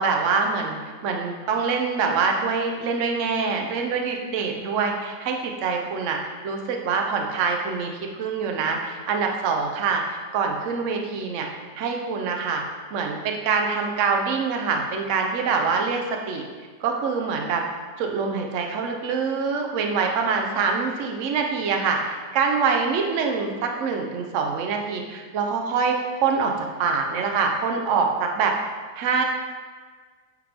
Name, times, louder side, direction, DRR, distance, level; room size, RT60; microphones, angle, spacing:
voice 1, 0.0-10.0 10.3-11.5 11.8-12.6 12.9-16.4 16.8-17.6 18.0-26.5 26.8-28.5 29.0-29.2, right 5 dB, 65° right, 2 dB, 0.8 m, -25 dB
8.2 x 3.6 x 3.4 m, 1.5 s
omnidirectional pair, 2.0 m